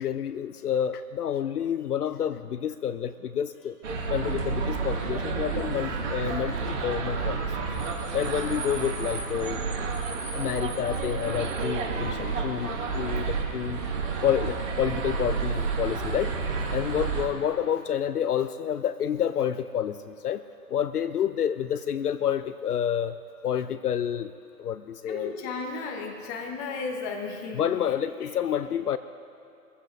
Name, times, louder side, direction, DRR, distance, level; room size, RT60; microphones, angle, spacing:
voice 1, 0.0-3.8 4.1-7.5 8.1-9.6 10.3-13.8 14.2-16.3 16.7-20.4 20.7-24.3 24.6-25.3 27.5-29.0, left 9 dB, 70° left, 13 dB, 0.6 m, -29 dB
sound 1, 3.8-17.3, right 4 dB, 45° right, 2.3 m, -30 dB
voice 2, 25.0-28.3, left 4 dB, 15° left, 3 dB, 1.0 m, -35 dB
22.5 x 15.0 x 2.6 m, 2.5 s
figure-of-eight pair, 135°, 49 cm